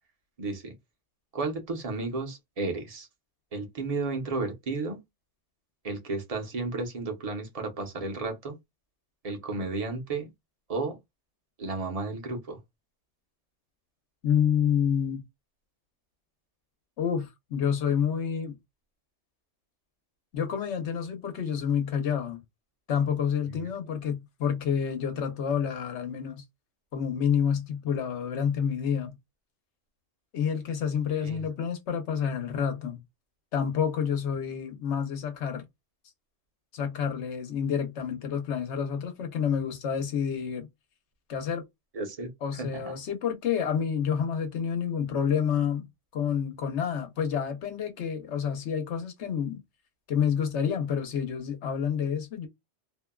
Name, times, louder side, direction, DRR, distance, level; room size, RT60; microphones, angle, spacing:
voice 1, 0.4-0.7 1.3-3.1 3.5-5.0 5.8-8.5 9.2-10.3 10.7-11.0 11.6-12.6 23.5-23.7 31.2-31.4 41.9-43.0, right 3 dB, 35° right, 0.8 m, -33 dB
voice 2, 14.2-15.2 17.0-18.6 20.3-22.4 22.9-26.4 26.9-29.2 30.3-33.0 33.5-35.6 36.7-40.7 41.3-41.6 42.4-45.9 46.1-49.6 50.1-52.5, left 7 dB, 85° left, 1.1 m, -28 dB
2.7 x 2.2 x 2.2 m
omnidirectional pair, 1.1 m